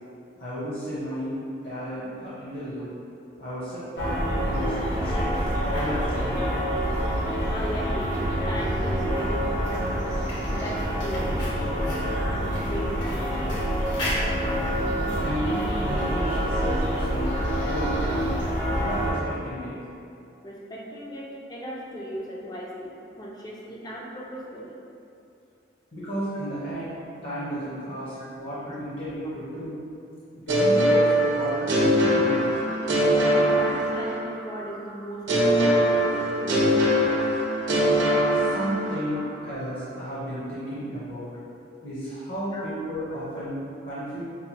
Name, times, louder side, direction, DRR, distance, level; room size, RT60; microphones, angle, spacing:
voice 1, 0.4-1.3 1.6-2.9 3.4-4.8 5.0-6.4 15.2-18.4 18.8-19.7 25.9-27.0 27.2-29.8 30.5-32.5 38.3-41.3 41.8-44.2, equal, 55° left, -10 dB, 0.8 m, -33 dB
sound 1, 4.0-19.1, equal, 75° left, 1.2 m, -26 dB
voice 2, 7.5-8.1 8.5-10.1 10.5-13.6 16.9-17.0 17.4-17.5 17.9-18.0 20.4-22.9 23.2-24.7 28.2-28.3 28.7-28.8 31.6-31.7 33.1-37.0 39.1-39.2 42.5-42.7 43.1-43.2, equal, 20° left, -4 dB, 0.4 m, -37 dB
sound 2, 30.5-34.4 35.3-39.1, equal, 75° right, 0.7 m, -22 dB
5.6 x 2.2 x 2.8 m, 2.6 s
head